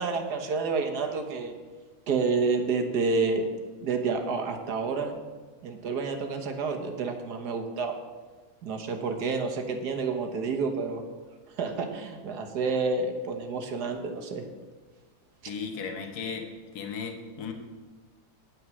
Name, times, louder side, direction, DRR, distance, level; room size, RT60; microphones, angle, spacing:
voice 1, 0.0-1.5 2.1-3.4 3.8-5.2 5.6-8.0 8.6-11.0 11.6-14.4, right 4 dB, 85° right, 5 dB, 1.8 m, -29 dB
voice 2, 15.5-16.5 16.7-17.5, left 6 dB, 75° left, 4 dB, 1.7 m, -35 dB
9.7 x 9.0 x 6.2 m, 1.4 s
omnidirectional pair, 1.7 m